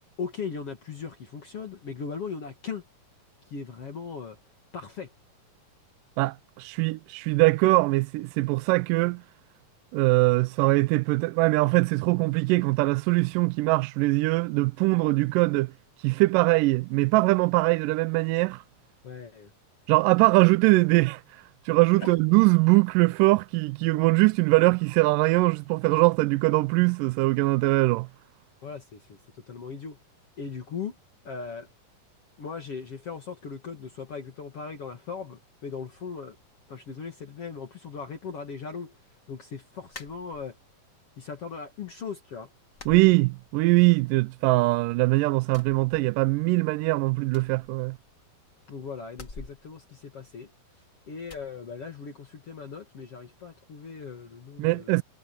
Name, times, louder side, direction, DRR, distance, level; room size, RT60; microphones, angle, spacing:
voice 1, 0.2-2.8 3.5-4.4 4.7-5.1 19.0-19.5 22.0-22.1 28.6-30.0 30.4-30.9 31.2-31.7 32.4-36.4 36.7-38.9 39.3-40.6 41.2-42.5 48.7-50.5 51.1-55.0, left 5 dB, 45° left, 2.8 m, -38 dB
voice 2, 6.2-9.2 9.9-15.7 16.0-18.6 19.9-21.2 21.7-28.1 42.9-48.0 54.6-55.0, right 23 dB, 80° right, 2.0 m, -22 dB
sound 1, 39.9-40.8 41.2-41.9 42.1-42.3 42.7-43.9 44.2-45.0 45.4-46.6 46.8-46.9 47.2-48.4 49.1-50.7 51.2-51.5, left 3 dB, 25° left, 2.0 m, -48 dB
omnidirectional pair, 4.1 m